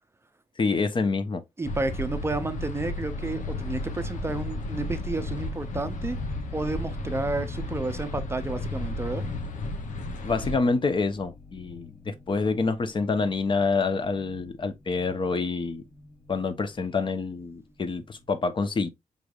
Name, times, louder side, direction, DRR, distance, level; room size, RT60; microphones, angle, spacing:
voice 1, 0.6-1.4 10.2-15.8 16.3-18.9, left 4 dB, 40° left, 0.6 m, -27 dB
sound 1, 1.6-10.6, left 2 dB, 85° left, 0.7 m, -33 dB
voice 2, 1.6-6.2 6.5-9.2, right 2 dB, 20° right, 0.5 m, -31 dB
sound 2, 3.0-18.2, left 3 dB, 60° left, 1.5 m, -44 dB
5.2 x 3.2 x 2.3 m
wide cardioid pair, 120°, 13 cm